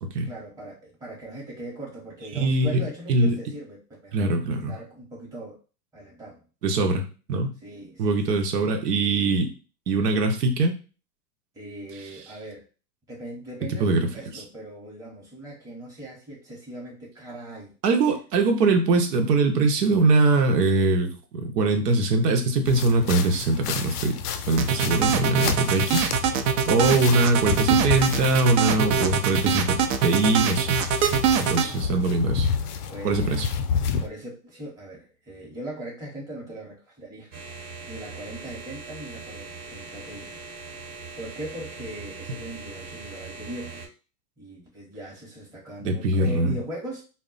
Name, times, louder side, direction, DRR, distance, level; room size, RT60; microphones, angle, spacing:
voice 1, 0.2-4.3 4.7-5.6 5.9-6.4 7.6-8.5 11.5-12.7 13.1-17.8 24.7-25.1 31.5-32.0 32.9-33.4 34.0-37.4 37.9-40.3 41.2-43.9 44.4-47.0, right 1 dB, 10° right, -4 dB, 0.7 m, -40 dB
voice 2, 2.3-3.3 4.1-4.7 6.6-7.6 8.0-9.5 9.9-10.7 13.8-14.1 17.8-24.2 24.5-26.1 26.7-29.8 30.0-32.5 33.0-33.5 45.8-46.6, right 2 dB, 85° right, 4 dB, 0.8 m, -22 dB
sound 1, 22.6-34.1, left 6 dB, 75° left, 0.6 m, -30 dB
sound 2, 24.6-31.7, right 8 dB, 60° right, 0.5 m, -23 dB
sound 3, 37.3-43.9, right 4 dB, 35° right, 0.9 m, -40 dB
2.1 x 2.0 x 3.8 m, 0.34 s
hypercardioid pair, 135°, 47 cm